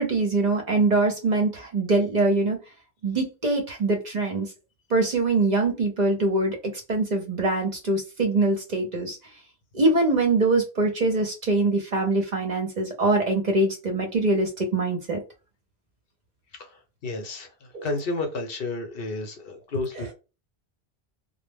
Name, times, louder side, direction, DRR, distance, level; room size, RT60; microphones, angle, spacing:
voice 1, 0.0-2.6 3.0-4.5 4.9-9.2 9.7-15.2 17.7-17.9 20.0-20.1, right 2 dB, 50° right, 0.7 m, -23 dB
voice 2, 17.0-17.5 17.8-20.1, left 2 dB, 65° left, 0.9 m, -31 dB
2.1 x 2.0 x 3.3 m
omnidirectional pair, 1.1 m